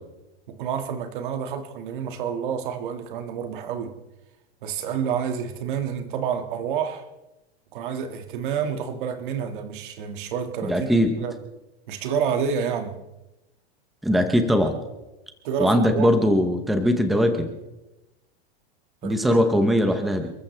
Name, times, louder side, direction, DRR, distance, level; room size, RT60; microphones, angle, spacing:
voice 1, 0.5-4.0 4.6-7.1 7.7-11.4 11.9-13.0 15.4-16.1 19.0-19.4, right 7 dB, 50° right, 2.0 m, -29 dB
voice 2, 10.6-11.1 14.0-14.8 15.6-17.5 19.0-20.3, equal, ahead, 0.8 m, -20 dB
29.0 x 14.0 x 3.4 m
supercardioid pair, 175°, 33 cm